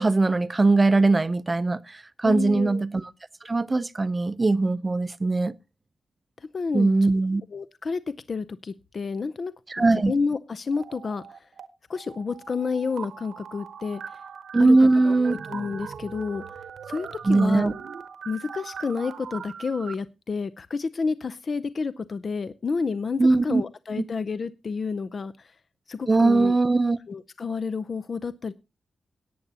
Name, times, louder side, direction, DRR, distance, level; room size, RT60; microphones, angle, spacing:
voice 1, 0.0-3.1 3.4-5.5 6.7-7.4 9.7-10.1 14.5-15.3 17.2-17.7 23.2-23.6 24.0-24.1 26.1-27.0, right 3 dB, 25° right, 0.6 m, -20 dB
voice 2, 2.2-2.8 6.4-6.9 7.5-8.0 8.3-11.4 11.9-14.0 14.6-16.4 16.9-17.7 18.3-25.5 25.9-26.6 27.1-28.5, left 4 dB, 50° left, 0.6 m, -30 dB
sound 1, 10.7-11.7 11.9-19.9, right 6 dB, 80° right, 1.0 m, -40 dB
17.5 x 9.4 x 2.8 m
wide cardioid pair, 105°, 0 cm